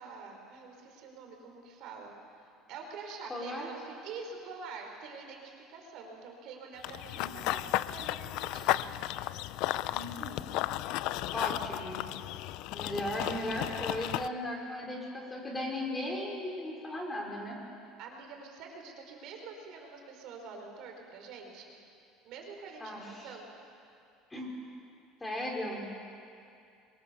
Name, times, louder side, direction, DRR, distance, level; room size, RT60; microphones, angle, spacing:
voice 1, 0.0-8.9 18.0-21.7 22.2-23.5, right 4 dB, 55° right, 2 dB, 4.8 m, -46 dB
voice 2, 3.3-3.7 7.2-7.3 9.9-10.4 11.3-12.0 12.7-17.6 22.8-23.4 24.3-24.5 25.2-25.8, left 1 dB, 10° left, -1 dB, 4.5 m, -37 dB
Run / Bird vocalization bird call bird song, 6.8-14.3, left 16 dB, 65° left, 0.5 m, -34 dB
28.0 x 23.0 x 7.0 m, 2.5 s
cardioid pair, 145°, 0 cm